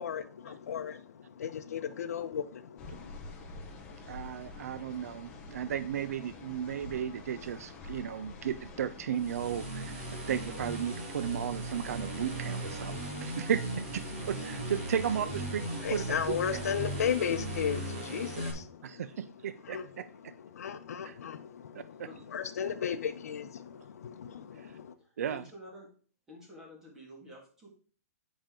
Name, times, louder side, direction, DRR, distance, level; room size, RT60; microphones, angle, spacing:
voice 1, 0.0-3.1 15.8-19.0 19.6-19.9 20.5-24.9, left 8 dB, 70° left, 0.7 m, -35 dB
sound 1, 2.8-17.1, left 4 dB, 15° left, 0.9 m, -48 dB
voice 2, 4.1-16.7 18.8-20.3 21.0-21.2 21.7-22.1 25.2-25.4, right 8 dB, 65° right, 0.4 m, -35 dB
sound 2, 9.1-18.5, right 1 dB, 40° right, 2.2 m, -38 dB
voice 3, 22.7-23.1 24.5-25.9 26.3-27.7, equal, 5° right, 1.7 m, -51 dB
10.0 x 5.2 x 3.7 m
hypercardioid pair, 180°, 9 cm